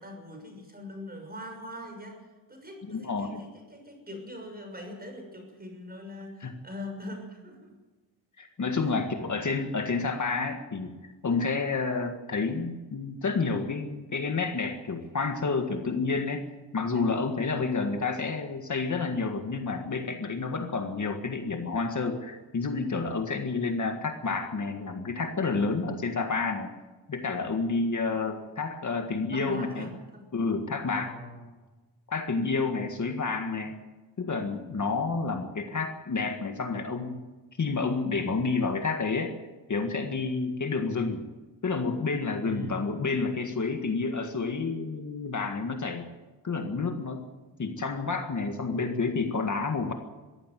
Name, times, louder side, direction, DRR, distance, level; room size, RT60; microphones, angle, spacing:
voice 1, 0.0-7.7 8.9-9.0 17.5-17.7 29.3-30.2 31.0-31.5 42.4-42.8, left 1 dB, 20° right, 3 dB, 6.3 m, -42 dB
voice 2, 2.9-3.5 6.4-6.5 8.4-10.9 11.2-26.7 27.1-29.9 30.3-31.1 32.1-33.8 34.2-37.2 37.6-39.4 39.7-41.3 41.6-46.1 46.4-47.2 47.6-49.9, left 4 dB, 40° left, 5 dB, 1.8 m, -29 dB
22.5 x 15.5 x 7.6 m, 1.2 s
wide cardioid pair, 145°, 44 cm